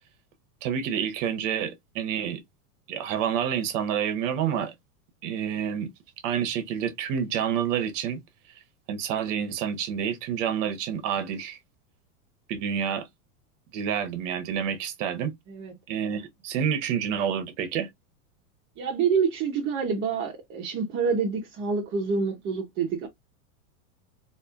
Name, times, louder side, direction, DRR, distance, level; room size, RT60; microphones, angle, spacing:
voice 1, 0.6-2.4 2.9-4.7 5.2-5.9 6.2-8.2 8.9-11.6 12.5-13.1 13.7-15.3 15.9-17.9, right 8 dB, 55° right, 1.0 m, -28 dB
voice 2, 18.8-23.1, right 5 dB, 25° right, 0.8 m, -27 dB
4.2 x 2.5 x 2.4 m
supercardioid pair, 145°, 45 cm